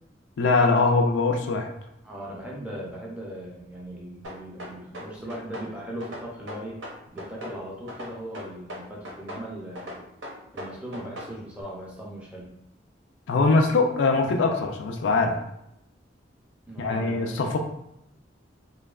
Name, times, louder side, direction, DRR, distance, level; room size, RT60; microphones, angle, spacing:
voice 1, 0.4-1.7 13.3-15.4 16.8-17.6, left 3 dB, 75° left, 4 dB, 0.3 m, -22 dB
voice 2, 2.0-6.8 7.1-10.0 10.5-12.5 16.7-17.4, right 1 dB, 5° right, -3 dB, 0.4 m, -38 dB
sound 1, 4.2-5.7 6.0-7.6 7.9-9.5 9.8-11.3, equal, 90° right, 0.6 m, -38 dB
2.6 x 2.2 x 2.3 m, 0.79 s
head